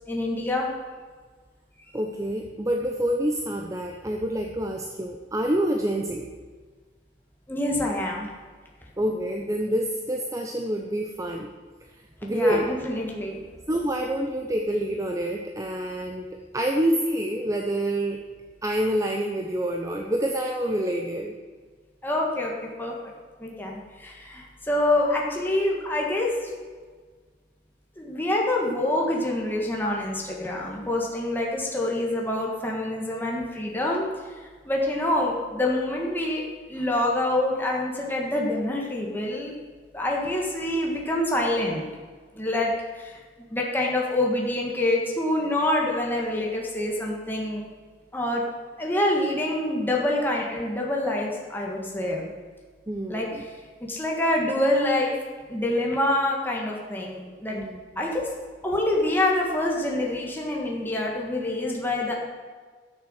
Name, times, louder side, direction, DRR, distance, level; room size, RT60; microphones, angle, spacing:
voice 1, 0.1-0.7 7.5-8.3 12.3-13.4 22.0-22.5 22.8-22.9 23.4-26.5 28.0-34.0 34.6-36.4 36.7-39.5 39.9-41.9 42.3-43.2 43.5-47.6 48.1-48.4 48.8-52.3 53.1-53.3 53.9-55.1 55.5-57.6 57.9-58.3 58.6-62.2, left 1 dB, 10° left, -2 dB, 1.7 m, -26 dB
voice 2, 1.9-6.2 9.0-11.5 12.2-12.7 13.7-16.3 16.5-18.2 18.6-21.4 52.9-53.4 57.5-58.1, right 1 dB, 20° right, 2 dB, 0.7 m, -27 dB
13.0 x 6.8 x 6.5 m, 1.5 s
head